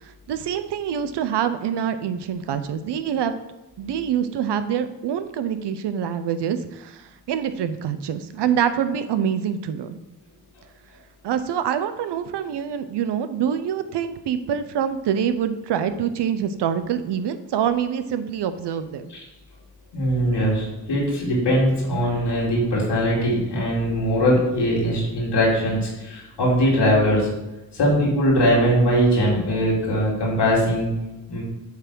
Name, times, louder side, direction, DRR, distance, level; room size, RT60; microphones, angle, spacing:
voice 1, 0.0-3.3 3.8-10.0 11.2-19.1, right 8 dB, 80° right, 11 dB, 0.6 m, -25 dB
voice 2, 19.9-27.3 27.7-30.9 31.3-31.4, equal, 85° left, -5 dB, 2.7 m, -21 dB
8.1 x 3.5 x 6.0 m, 0.99 s
cardioid pair, 45°, 41 cm